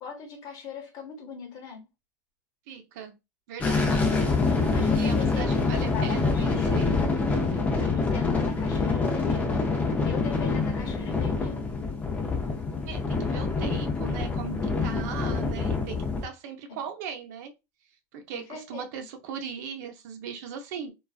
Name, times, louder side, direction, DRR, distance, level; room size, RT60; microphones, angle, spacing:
voice 1, 0.0-1.9 4.7-6.9 7.8-9.6 10.0-11.6 16.7-16.8 18.3-18.8, left 7 dB, 45° left, 1.0 m, -40 dB
voice 2, 2.7-3.1 3.5-4.1 4.9-7.0 12.9-17.5 18.1-20.9, right 7 dB, 75° right, 0.6 m, -38 dB
sound 1, 3.6-16.2, left 4 dB, 15° left, 0.5 m, -26 dB
2.3 x 2.2 x 2.4 m
supercardioid pair, 130°, 9 cm